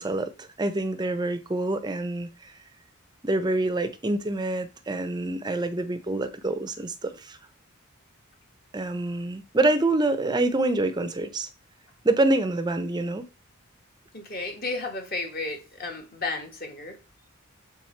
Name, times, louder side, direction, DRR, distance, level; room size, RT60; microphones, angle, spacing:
voice 1, 0.0-2.5 3.2-7.4 8.7-11.5 12.0-13.3, right 2 dB, 20° right, 0.6 m, -26 dB
voice 2, 14.1-17.0, left 3 dB, 40° left, 1.3 m, -33 dB
7.1 x 3.6 x 4.3 m
head